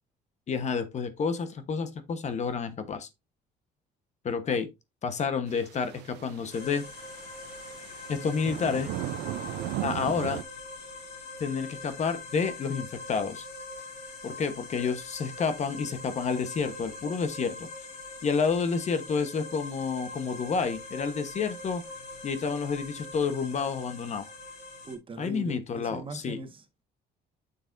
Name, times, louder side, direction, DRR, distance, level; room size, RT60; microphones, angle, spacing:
voice 1, 0.5-3.1 4.2-4.7 5.0-6.9 8.1-8.9 9.8-10.4 11.4-13.5 14.2-17.7 18.2-21.8 22.2-24.3 25.2-26.4, left 5 dB, 45° left, 1.1 m, -29 dB
sound 1, 5.5-10.4, right 13 dB, 80° right, 0.6 m, -37 dB
sound 2, 6.5-25.0, left 2 dB, 60° left, 5.3 m, -43 dB
voice 2, 24.8-26.8, right 3 dB, 30° right, 1.5 m, -41 dB
8.8 x 7.0 x 2.6 m
cardioid pair, 110°, 17 cm